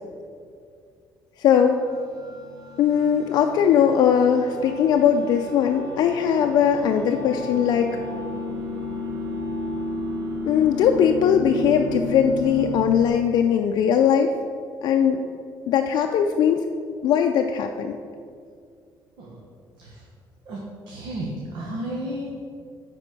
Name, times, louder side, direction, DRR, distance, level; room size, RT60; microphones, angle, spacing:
voice 1, 1.4-1.8 2.8-7.9 10.4-14.3 14.8-15.2 15.7-16.7 17.0-18.0, left 8 dB, 60° left, 4 dB, 0.4 m, -20 dB
sound 1, 1.7-13.1, left 2 dB, 50° right, 1.0 m, -32 dB
voice 2, 20.9-22.4, right 1 dB, 75° right, -3 dB, 1.3 m, -33 dB
9.7 x 4.2 x 6.0 m, 2.3 s
cardioid pair, 170°, 8 cm